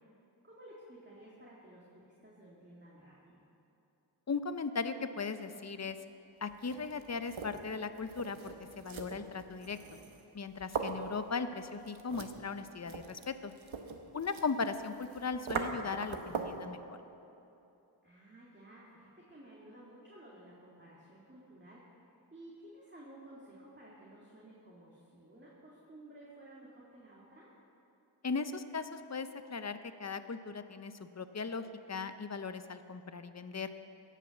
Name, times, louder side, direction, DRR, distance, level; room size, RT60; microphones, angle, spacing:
voice 1, 0.4-3.4 14.5-14.7 18.0-27.5, right 1 dB, 25° right, -6 dB, 2.2 m, -55 dB
voice 2, 4.3-6.0 6.4-9.8 10.3-13.5 14.1-16.8 28.2-33.7, left 4 dB, 35° left, 11 dB, 0.6 m, -38 dB
sound 1, 6.5-16.7, right 5 dB, 80° right, 1.0 m, -42 dB
17.0 x 5.9 x 7.1 m, 2.9 s
wide cardioid pair, 65°, 46 cm